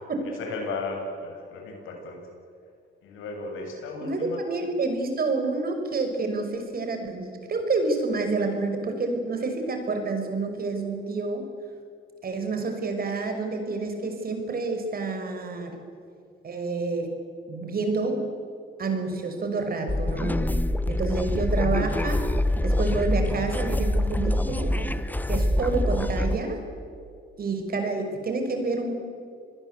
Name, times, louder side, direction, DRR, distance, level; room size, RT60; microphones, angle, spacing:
voice 1, 0.4-2.2 3.0-4.4, left 3 dB, 85° left, 2 dB, 7.5 m, -35 dB
voice 2, 4.0-11.5 12.2-15.8 16.4-17.1 17.5-18.2 18.8-20.4 20.9-22.3 22.6-24.7 25.3-26.6 27.4-28.9, right 3 dB, 50° right, 5 dB, 5.8 m, -28 dB
sound 1, 19.9-26.4, left 1 dB, 10° left, 1.3 m, -25 dB
28.0 x 20.5 x 8.4 m, 2.4 s
cardioid pair, 90°, 20 cm